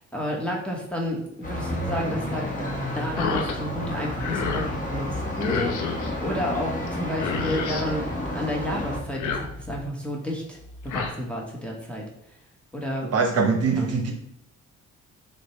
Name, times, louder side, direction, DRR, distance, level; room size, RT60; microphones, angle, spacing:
voice 1, 0.0-2.5 2.8-10.6 10.8-12.1 12.7-13.9, left 1 dB, 5° left, -2 dB, 1.1 m, -31 dB
sound 1, 1.4-9.0, left 1 dB, 25° left, 1.0 m, -31 dB
sound 2, 3.2-3.6 3.9-4.7 5.4-6.1 6.9-7.0 7.1-7.9 9.0-9.9 10.6-11.1, left 5 dB, 75° left, 0.7 m, -30 dB
voice 2, 13.1-14.1, right 4 dB, 55° right, 2 dB, 0.9 m, -22 dB
6.2 x 2.2 x 3.1 m, 0.78 s
cardioid pair, 90°, 30 cm